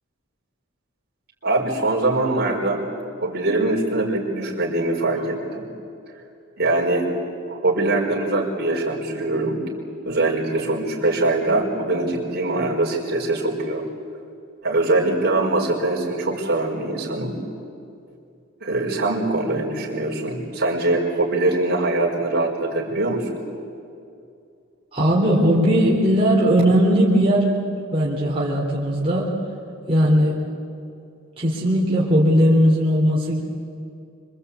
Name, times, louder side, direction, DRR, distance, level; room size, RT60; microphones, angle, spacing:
voice 1, 1.4-2.8 3.2-5.7 6.6-7.1 7.5-9.6 10.0-13.9 14.6-17.4 18.6-23.3, right 2 dB, 50° right, -2 dB, 4.9 m, -22 dB
voice 2, 24.9-27.5 27.9-29.3 29.9-30.4 31.4-33.4, equal, 30° right, -5 dB, 3.7 m, -18 dB
26.0 x 25.0 x 8.4 m, 2.5 s
head